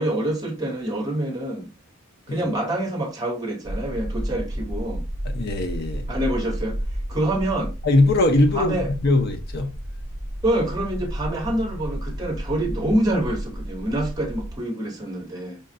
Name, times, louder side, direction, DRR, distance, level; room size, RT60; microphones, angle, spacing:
voice 1, 0.0-1.7 2.3-5.0 6.1-6.8 7.1-7.7 8.5-8.9 10.4-15.6, right 1 dB, 20° right, 1.0 m, -26 dB
sound 1, 3.6-14.6, equal, 40° right, 0.5 m, -32 dB
voice 2, 5.3-6.1 7.8-9.7, left 2 dB, 50° left, 0.7 m, -21 dB
5.1 x 2.3 x 2.6 m
head